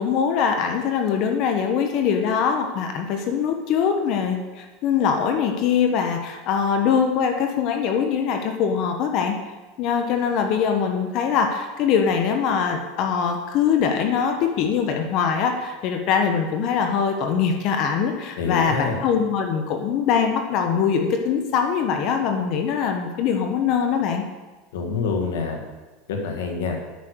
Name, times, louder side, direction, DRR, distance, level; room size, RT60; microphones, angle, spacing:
voice 1, 0.0-9.4 9.8-24.2, left 7 dB, 50° left, 4 dB, 1.0 m, -22 dB
voice 2, 18.4-19.0 24.7-25.6 26.1-26.8, left 4 dB, 85° left, 2 dB, 1.7 m, -26 dB
9.3 x 6.4 x 6.5 m, 1.2 s
supercardioid pair, 130°, 0 cm